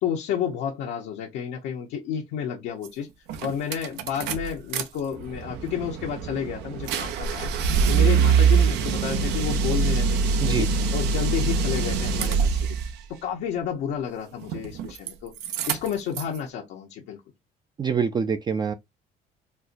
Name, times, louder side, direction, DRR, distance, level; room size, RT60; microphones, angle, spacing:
voice 1, 0.0-3.1 3.4-7.5 7.9-12.8 13.2-15.3 15.7-17.2, left 8 dB, 85° left, 0.8 m, -31 dB
sound 1, 2.9-3.0 3.3-4.8 5.2-12.9 14.4-15.1 15.4-16.4, right 6 dB, 85° right, 0.5 m, -24 dB
voice 2, 17.8-18.7, right 6 dB, 25° right, 0.3 m, -25 dB
4.2 x 2.1 x 2.5 m
cardioid pair, 110°, 17 cm